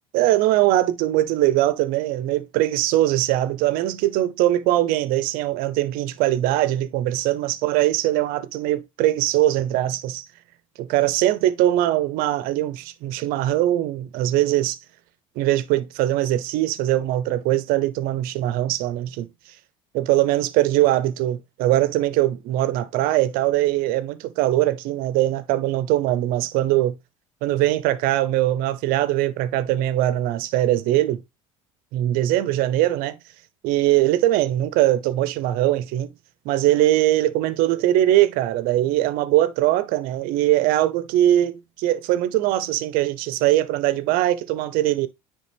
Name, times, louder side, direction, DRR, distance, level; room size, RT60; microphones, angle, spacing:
voice 1, 0.1-10.2 10.8-14.8 15.4-19.3 19.9-27.0 27.4-31.2 31.9-33.2 33.6-36.1 36.4-45.1, right 14 dB, 70° right, 0.7 m, -21 dB
9.3 x 3.5 x 3.4 m
hypercardioid pair, 80°, 16 cm